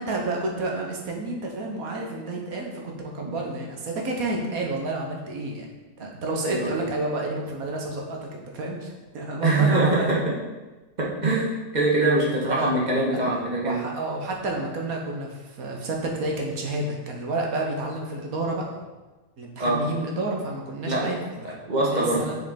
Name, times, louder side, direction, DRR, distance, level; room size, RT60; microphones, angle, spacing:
voice 1, 0.0-5.7 6.0-10.1 12.4-12.7 13.6-18.6 19.4-21.5 21.8-22.4, right 2 dB, 80° right, 0 dB, 1.6 m, -30 dB
voice 2, 9.4-10.2 11.0-13.8 19.6-19.9 20.9-21.1 21.7-22.3, right 2 dB, 30° right, -3 dB, 1.4 m, -23 dB
6.4 x 5.4 x 4.3 m, 1.2 s
omnidirectional pair, 1.5 m